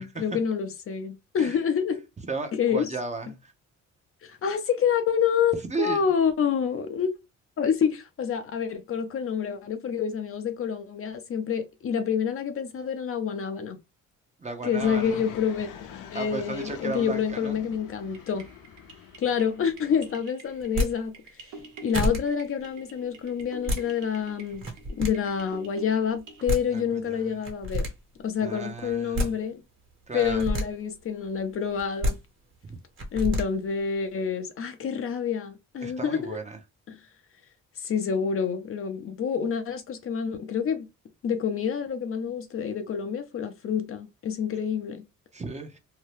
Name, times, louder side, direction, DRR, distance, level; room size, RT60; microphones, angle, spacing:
voice 1, 0.0-2.0 2.5-2.9 4.2-7.1 7.6-13.8 14.6-15.7 16.1-18.5 19.2-21.1 21.4-21.5 21.8-24.7 24.9-27.9 28.2-29.6 30.1-32.2 33.1-36.4 36.9-37.0 37.8-40.9 41.2-45.0, left 7 dB, 45° left, 0.5 m, -27 dB
voice 2, 2.3-3.5 5.7-6.1 14.4-15.2 16.1-17.6 26.7-27.3 28.4-29.3 30.1-30.4 32.7-32.8 35.8-36.6 45.3-45.8, right 4 dB, 25° right, 0.7 m, -35 dB
Fixed-wing aircraft airplane, 14.8-20.2, left 8 dB, 90° left, 0.6 m, -45 dB
sound 1, 18.1-26.5, right 3 dB, 85° right, 0.8 m, -48 dB
sound 2, 20.6-20.9 21.6-21.7 21.9-22.2 23.4-23.8 24.5-25.1 26.2-26.3 26.5-26.6 27.4-27.9 28.9-29.3 30.2-30.6 31.8-32.1 33.0-33.4, left 1 dB, 45° right, 1.3 m, -27 dB
2.7 x 2.2 x 3.2 m
cardioid pair, 90°, 30 cm